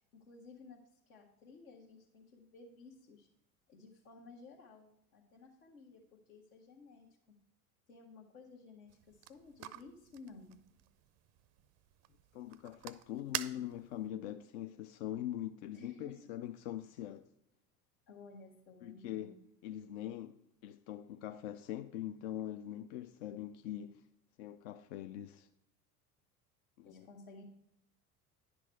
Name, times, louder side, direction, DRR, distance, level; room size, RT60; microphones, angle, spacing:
voice 1, 0.1-3.3 3.7-7.1 7.9-10.6 15.7-16.3 18.1-19.4 26.8-27.4, left 4 dB, 70° left, 1.3 m, -55 dB
sound 1, 8.9-14.1, right 13 dB, 35° right, 0.5 m, -47 dB
voice 2, 12.3-17.3 18.8-19.3 19.6-24.0 24.4-25.5 26.8-27.1, left 12 dB, 50° left, 0.4 m, -43 dB
10.5 x 6.2 x 4.4 m
figure-of-eight pair, 75°, 46 cm